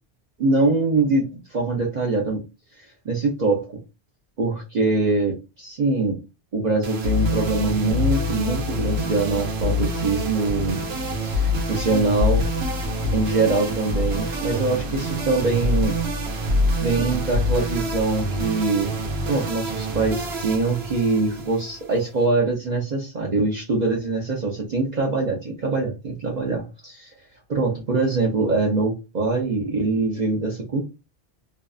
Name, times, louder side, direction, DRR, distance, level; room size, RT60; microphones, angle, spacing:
voice 1, 0.4-2.4 3.0-3.6 4.4-6.2 6.5-10.9 11.2-12.5 13.1-15.9 16.8-18.9 19.3-27.1 27.5-30.8, right 3 dB, 50° right, -2 dB, 0.7 m, -23 dB
sound 1, 6.8-22.2, left 1 dB, 75° right, 1.0 m, -26 dB
2.7 x 2.2 x 2.3 m, 0.27 s
omnidirectional pair, 1.1 m